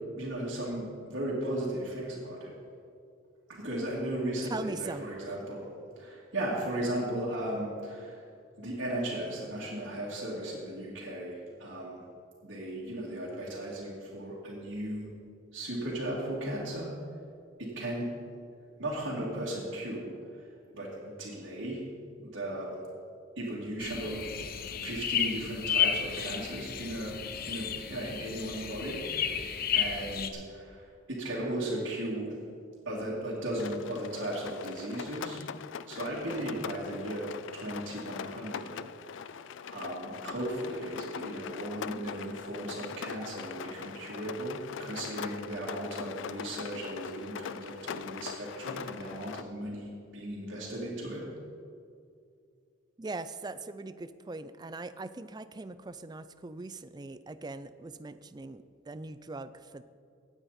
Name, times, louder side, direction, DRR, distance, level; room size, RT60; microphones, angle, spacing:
voice 1, 0.2-2.5 3.5-5.7 6.0-8.2 8.6-12.0 12.4-15.1 15.5-16.9 17.6-18.1 18.8-20.2 20.7-21.8 22.2-22.7 23.4-24.2 24.8-27.2 27.5-29.4 29.7-32.4 32.8-35.4 35.9-38.8 39.1-39.4 39.7-51.2, right 1 dB, 75° right, -8 dB, 2.6 m, -36 dB
voice 2, 4.5-5.4 53.0-59.8, right 3 dB, 20° right, 13 dB, 0.4 m, -41 dB
sound 1, 23.8-30.3, left 8 dB, 50° left, 0.8 m, -32 dB
Rain, 33.6-49.4, left 7 dB, 70° left, 0.4 m, -42 dB
17.5 x 8.9 x 4.3 m, 2.4 s
head